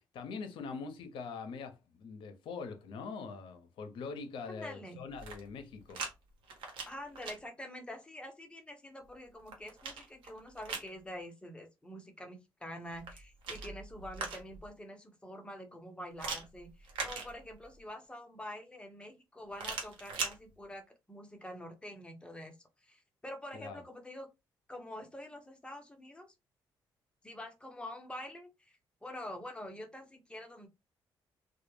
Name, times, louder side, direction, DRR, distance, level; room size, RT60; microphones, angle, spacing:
voice 1, 0.1-6.0 23.5-23.8, left 5 dB, 75° left, 0.6 m, -43 dB
voice 2, 4.5-5.0 6.9-22.5 22.8-24.3 24.7-26.3 27.2-30.7, left 1 dB, 10° left, 0.8 m, -46 dB
sound 1, 5.1-6.1 6.4-7.4 9.1-10.9 12.9-14.7 16.2-17.8 19.5-20.4, right 4 dB, 80° right, 0.8 m, -41 dB
2.2 x 2.0 x 3.0 m
cardioid pair, 75°, 9 cm